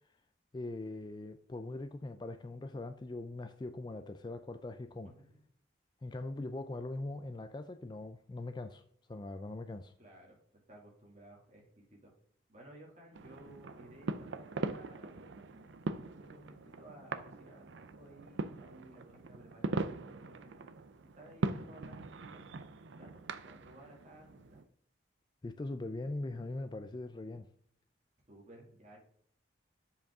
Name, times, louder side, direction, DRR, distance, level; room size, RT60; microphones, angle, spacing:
voice 1, 0.5-5.1 6.0-8.8 9.1-9.9 25.4-27.5, left 2 dB, 25° left, 0.3 m, -41 dB
voice 2, 10.0-10.4 10.7-12.1 12.5-15.7 16.2-20.9 21.1-22.6 23.0-24.6 28.3-29.0, right 1 dB, 40° right, 2.3 m, -56 dB
sound 1, 13.1-24.6, right 3 dB, 75° right, 0.5 m, -41 dB
7.1 x 5.3 x 3.6 m
head